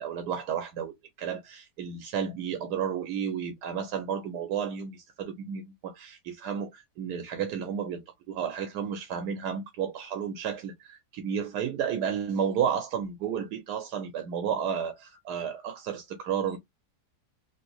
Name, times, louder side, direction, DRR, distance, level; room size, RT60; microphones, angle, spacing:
voice 1, 0.0-16.6, right 8 dB, 85° right, 1.2 m, -32 dB
3.1 x 2.6 x 2.9 m
omnidirectional pair, 1.7 m